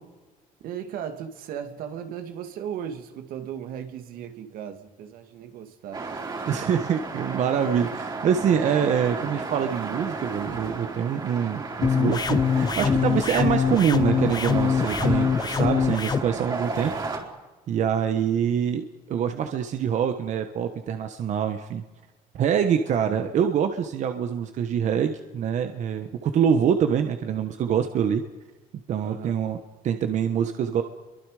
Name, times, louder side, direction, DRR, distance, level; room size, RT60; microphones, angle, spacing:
voice 1, 0.6-6.2 29.0-29.3, right 8 dB, 75° right, 2.2 m, -36 dB
sound 1, 5.9-17.2, right 3 dB, 30° right, 4.2 m, -33 dB
voice 2, 6.4-16.9 17.7-21.8 22.3-28.2 28.9-30.8, right 8 dB, 55° right, 1.3 m, -25 dB
sound 2, 11.8-16.2, left 6 dB, 25° left, 0.8 m, -23 dB
29.5 x 23.5 x 5.0 m
cardioid pair, 140°, 15 cm